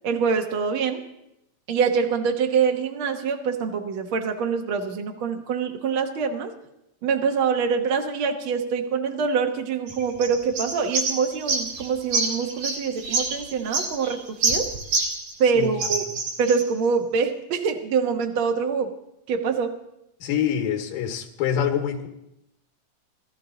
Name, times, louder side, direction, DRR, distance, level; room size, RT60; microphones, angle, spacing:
voice 1, 0.0-1.0 1.7-6.5 7.0-14.7 15.4-16.0 16.4-18.9 19.3-19.7, right 5 dB, 55° right, 4 dB, 1.5 m, -25 dB
sound 1, 9.9-15.5 15.8-16.7, right 3 dB, 80° right, 3.8 m, -27 dB
voice 2, 20.2-22.1, left 9 dB, 85° left, 4 dB, 3.0 m, -25 dB
20.0 x 13.0 x 3.9 m, 0.85 s
omnidirectional pair, 3.9 m